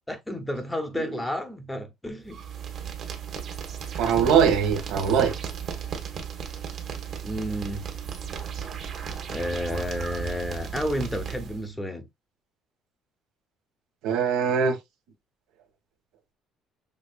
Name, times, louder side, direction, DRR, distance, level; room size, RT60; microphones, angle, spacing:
voice 1, 0.1-2.4 7.2-7.9 9.3-12.1, left 1 dB, 5° left, 0.7 m, -31 dB
sound 1, 2.3-11.7, right 7 dB, 40° right, 1.3 m, -35 dB
voice 2, 4.0-5.3 14.0-14.8, right 7 dB, 85° right, 1.7 m, -22 dB
6.3 x 3.6 x 2.3 m
cardioid pair, 175°, 0 cm